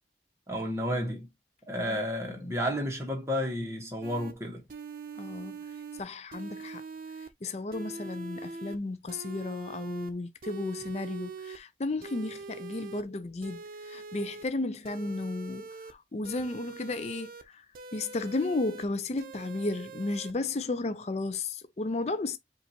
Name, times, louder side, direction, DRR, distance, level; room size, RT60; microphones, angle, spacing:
voice 1, 0.5-1.3 1.7-4.6, equal, 15° right, 1.5 m, -31 dB
sound 1, 4.0-4.3 4.7-6.0 6.3-7.3 7.7-8.8 9.1-10.1 10.4-11.6 12.0-13.0 13.4-14.5 14.8-15.9 16.2-17.4 17.7-18.9 19.2-20.3, right 4 dB, 50° right, 0.7 m, -43 dB
voice 2, 5.2-5.6 6.0-6.8 7.4-13.6 13.9-17.6 17.9-22.4, left 2 dB, 40° left, 0.5 m, -33 dB
5.0 x 2.6 x 2.9 m
head